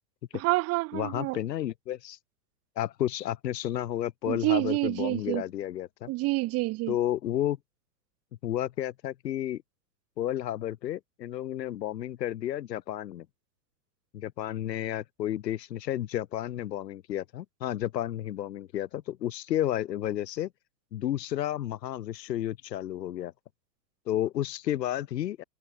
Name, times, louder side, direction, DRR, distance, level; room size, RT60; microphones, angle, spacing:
voice 1, 0.3-1.4 4.3-5.4 6.1-7.0, right 21 dB, 30° right, 1.9 m, -28 dB
voice 2, 0.9-2.2 2.7-6.1 6.9-7.6 8.4-9.6 10.2-13.2 14.1-20.5 20.9-23.3 24.1-25.4, left 12 dB, 75° left, 3.4 m, -32 dB
supercardioid pair, 155°, 50 cm